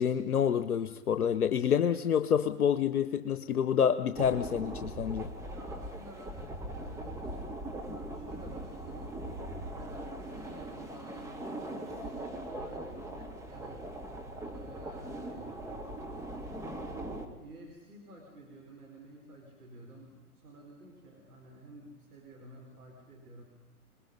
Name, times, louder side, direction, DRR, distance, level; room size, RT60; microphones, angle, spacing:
voice 1, 0.0-5.3, left 8 dB, 80° left, 10 dB, 1.1 m, -28 dB
sound 1, 4.1-17.3, right 1 dB, 5° right, 2.4 m, -40 dB
voice 2, 5.3-7.4 7.7-9.1 9.8-16.5 17.4-23.4, right 1 dB, 80° right, 1 dB, 4.9 m, -52 dB
27.0 x 21.0 x 5.5 m, 1.2 s
hypercardioid pair, 120°, 44 cm